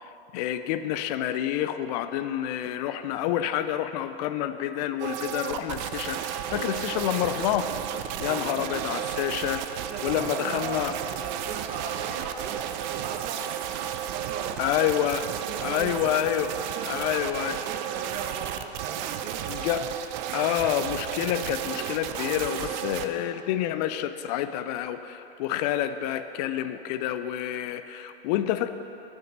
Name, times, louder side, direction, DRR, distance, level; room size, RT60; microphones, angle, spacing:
voice 1, 0.0-7.7 8.2-9.6 10.0-10.9 14.6-15.2 15.6-16.5 16.9-17.6 19.5-19.8 20.3-28.7, left 11 dB, 40° left, 11 dB, 0.4 m, -28 dB
sound 1, 5.0-23.1, right 10 dB, 45° right, 0.5 m, -33 dB
voice 2, 8.2-9.0 9.8-13.8 14.1-19.6 28.6-28.7, right 5 dB, 25° right, 4 dB, 0.8 m, -39 dB
9.0 x 6.0 x 5.3 m, 3.0 s
hypercardioid pair, 120°, 33 cm